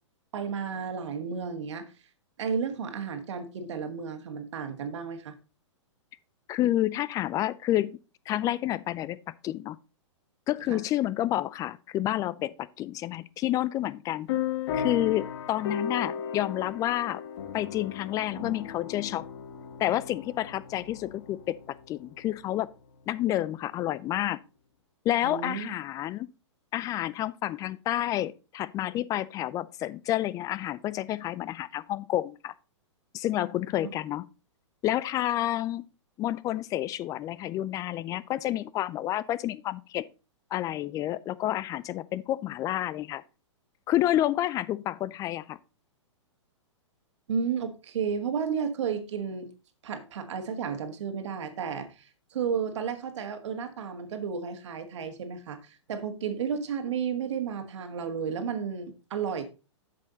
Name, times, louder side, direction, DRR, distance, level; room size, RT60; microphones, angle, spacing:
voice 1, 0.3-1.9 2.4-5.4 10.7-10.8 25.2-25.7 47.3-49.5 49.8-59.4, right 6 dB, 65° right, 1.7 m, -32 dB
voice 2, 6.5-8.0 8.3-9.8 10.5-14.3 14.7-17.2 17.5-19.3 19.8-22.7 23.1-24.4 25.0-26.3 26.7-32.5 33.1-34.3 34.8-35.9 36.2-40.0 40.5-43.2 43.9-45.6, left 13 dB, 20° left, 0.4 m, -29 dB
sound 1, 14.3-22.4, left 8 dB, 50° left, 1.6 m, -36 dB
8.1 x 6.7 x 3.9 m
hypercardioid pair, 120°, 16 cm